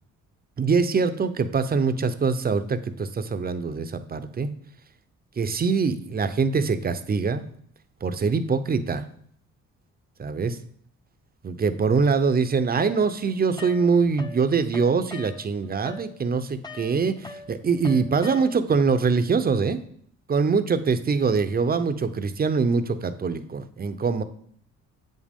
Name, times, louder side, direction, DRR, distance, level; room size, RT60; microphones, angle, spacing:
voice 1, 0.6-4.5 5.4-7.5 8.0-9.0 10.2-10.6 11.4-19.8 20.3-24.2, right 5 dB, 30° right, 10 dB, 0.6 m, -23 dB
sound 1, 12.8-14.4 14.7-18.8, left 4 dB, 15° left, 0.6 m, -42 dB
7.8 x 7.4 x 3.6 m, 0.62 s
cardioid pair, 90°, 30 cm